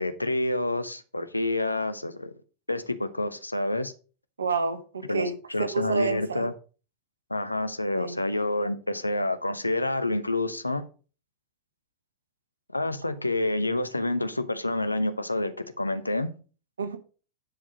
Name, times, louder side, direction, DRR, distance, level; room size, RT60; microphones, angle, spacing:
voice 1, 0.0-2.3 2.7-3.9 5.1-6.5 7.3-10.8 12.7-16.3, left 2 dB, 85° left, 0.8 m, -28 dB
voice 2, 4.4-5.3 5.7-6.5 7.9-8.2 16.8-17.0, right 4 dB, 70° right, 1.2 m, -29 dB
10.0 x 4.9 x 5.0 m
figure-of-eight pair, 90°, 0 cm